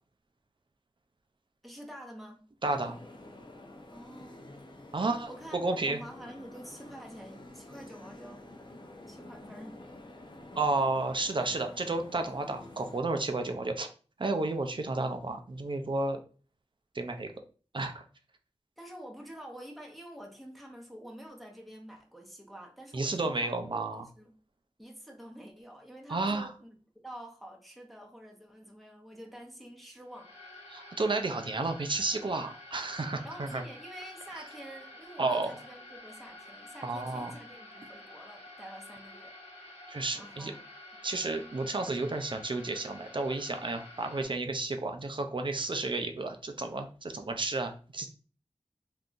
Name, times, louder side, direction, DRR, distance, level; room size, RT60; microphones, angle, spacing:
voice 1, 1.6-2.4 3.9-4.4 5.3-8.4 9.1-9.8 18.8-24.3 24.8-26.8 27.0-30.3 33.2-39.3 40.1-40.6, equal, ahead, 0.8 m, -48 dB
voice 2, 2.6-3.0 4.9-6.0 10.6-13.9 14.2-16.2 16.9-17.3 17.7-18.0 22.9-24.0 26.1-26.5 30.7-33.6 34.3-34.4 35.2-35.5 36.8-37.3 39.9-40.5 41.0-48.1, right 2 dB, 50° right, 0.5 m, -32 dB
sound 1, 2.7-13.0, left 1 dB, 45° left, 0.6 m, -49 dB
sound 2, 30.1-44.2, left 1 dB, 90° left, 1.2 m, -50 dB
3.7 x 2.7 x 2.5 m
wide cardioid pair, 50°, 11 cm